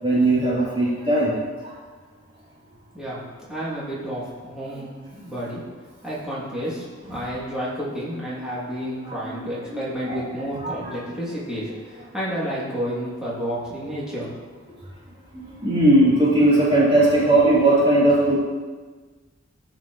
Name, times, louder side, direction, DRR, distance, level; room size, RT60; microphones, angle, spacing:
voice 1, 0.0-1.3 1.6-1.7 8.3-8.4 9.0-9.4 9.7-9.8 10.1-10.2 10.6-10.9 15.3-18.4, right 1 dB, 25° right, -8 dB, 3.0 m, -19 dB
voice 2, 3.5-5.6 6.0-14.3 14.6-14.7, equal, 5° right, -9 dB, 2.5 m, -30 dB
14.5 x 5.9 x 3.0 m, 1.4 s
head